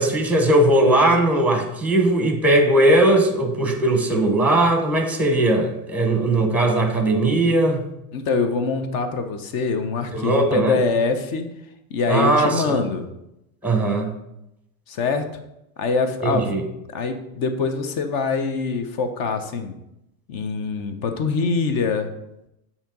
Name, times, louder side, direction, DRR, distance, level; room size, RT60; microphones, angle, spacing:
voice 1, 0.0-7.8 10.1-10.8 12.1-12.8 13.6-14.1 16.2-16.6, right 1 dB, 5° right, 4 dB, 0.8 m, -19 dB
voice 2, 8.1-11.4 11.9-13.1 14.9-15.3 15.8-16.5 16.9-19.7 20.3-22.1, left 4 dB, 50° left, 8 dB, 0.8 m, -24 dB
7.2 x 2.9 x 5.2 m, 0.86 s
supercardioid pair, 125°, 46 cm